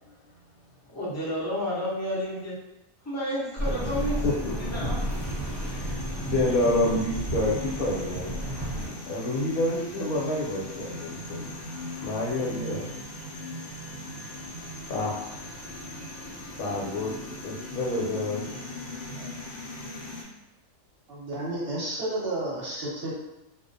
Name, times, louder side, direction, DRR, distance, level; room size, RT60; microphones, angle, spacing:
voice 1, 0.9-2.5 3.0-5.0, equal, 20° left, -8 dB, 0.4 m, -31 dB
sound 1, 3.6-20.2, equal, 65° left, 0.8 m, -39 dB
sound 2, 3.6-8.9, equal, 20° right, 0.9 m, -32 dB
voice 2, 4.2-4.7 5.6-8.3 9.1-11.4 12.0-12.9 14.9-15.1 16.6-17.1 17.4-18.6 19.2-19.3, left 1 dB, 85° left, -3 dB, 1.1 m, -28 dB
voice 3, 21.1-23.1, right 1 dB, 55° right, -7 dB, 0.8 m, -31 dB
2.4 x 2.0 x 2.5 m, 0.93 s
omnidirectional pair, 1.5 m